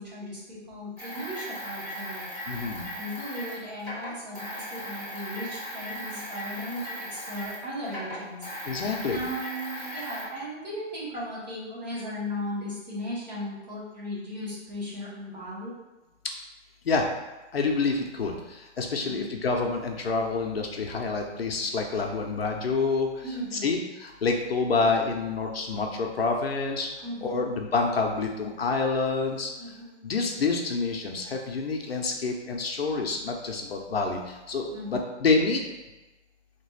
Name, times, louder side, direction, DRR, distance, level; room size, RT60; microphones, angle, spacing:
voice 1, 0.0-2.2 2.9-8.5 9.1-15.7 19.0-19.3 23.2-23.7 27.0-27.5 29.6-30.0 34.7-35.0, equal, 35° right, -7 dB, 1.5 m, -37 dB
slot machine reels sound, 1.0-7.6 7.9-10.3, equal, 15° right, 1.2 m, -38 dB
voice 2, 2.5-2.9 8.7-9.2 16.8-17.1 17.5-23.2 23.6-26.9 27.2-29.5 30.0-35.6, left 4 dB, 55° left, 2 dB, 0.6 m, -27 dB
3.3 x 3.0 x 4.2 m, 1.1 s
hypercardioid pair, 180°, 36 cm